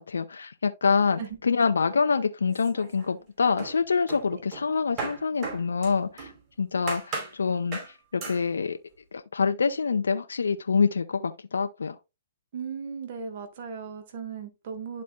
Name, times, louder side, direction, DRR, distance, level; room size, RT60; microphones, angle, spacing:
voice 1, 0.0-6.3 6.6-7.8 8.1-8.8 9.1-12.0, left 5 dB, 80° left, 0.6 m, -26 dB
sound 1, 2.5-3.3 3.6-6.4 6.9-7.4 7.7-7.9 8.2-8.4, right 4 dB, 35° right, 4.5 m, -37 dB
voice 2, 12.5-15.0, right 6 dB, 50° right, 1.3 m, -37 dB
11.5 x 4.2 x 2.3 m
hypercardioid pair, 130°, 0 cm